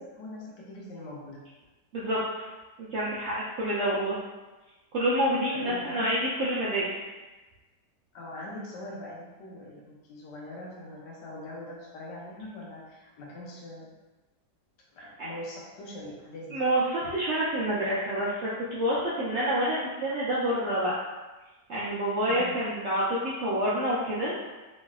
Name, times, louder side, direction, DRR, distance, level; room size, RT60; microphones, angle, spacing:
voice 1, 0.0-1.4 5.5-6.1 8.1-13.9 14.9-16.6 22.3-22.6, left 1 dB, 85° left, -3 dB, 1.3 m, -42 dB
voice 2, 1.9-2.4 2.8-4.2 4.9-6.9 15.2-15.3 16.5-20.9 21.7-24.3, right 1 dB, 75° right, -8 dB, 0.6 m, -28 dB
3.1 x 2.6 x 2.3 m, 1.2 s
omnidirectional pair, 1.8 m